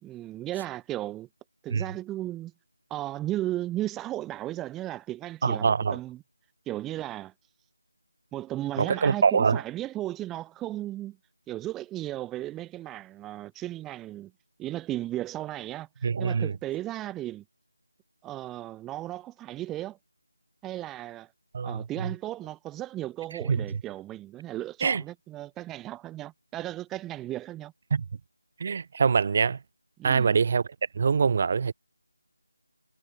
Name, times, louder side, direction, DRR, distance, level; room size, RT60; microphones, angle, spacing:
voice 1, 0.0-1.3 1.6-2.5 2.9-6.2 6.7-7.3 8.3-11.2 11.5-14.3 14.6-17.4 18.2-20.0 20.6-21.3 21.6-27.7 30.0-30.3, right 14 dB, 5° right, 2.2 m, -35 dB
voice 2, 5.4-6.0 8.8-9.6 16.0-16.5 21.5-22.1 23.5-23.6 24.8-25.0 27.9-28.0 28.6-29.6 30.0-30.6 30.9-31.7, right 5 dB, 20° right, 2.9 m, -24 dB
figure-of-eight pair, 180°, 0 cm